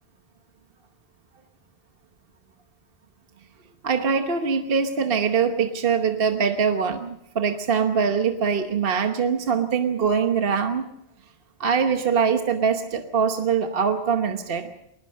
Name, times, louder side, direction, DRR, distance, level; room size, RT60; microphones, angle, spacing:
voice 1, 3.8-10.9 11.6-14.7, right 6 dB, 55° right, 6 dB, 1.3 m, -23 dB
21.5 x 20.5 x 6.4 m, 0.80 s
omnidirectional pair, 1.2 m